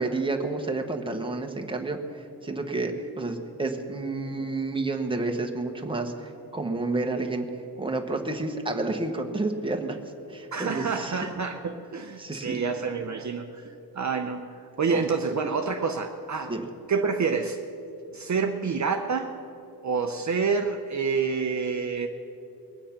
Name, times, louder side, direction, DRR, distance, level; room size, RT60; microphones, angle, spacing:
voice 1, 0.0-7.5 7.8-10.0 10.3-11.3 12.2-12.6 14.9-15.0 16.5-16.7, right 2 dB, 15° right, 3 dB, 1.0 m, -30 dB
voice 2, 10.5-14.5 14.8-16.5 16.9-17.6 18.1-19.4 19.8-22.1, right 5 dB, 45° right, 5 dB, 0.6 m, -28 dB
21.5 x 9.0 x 5.8 m, 2.8 s
wide cardioid pair, 175°, 40 cm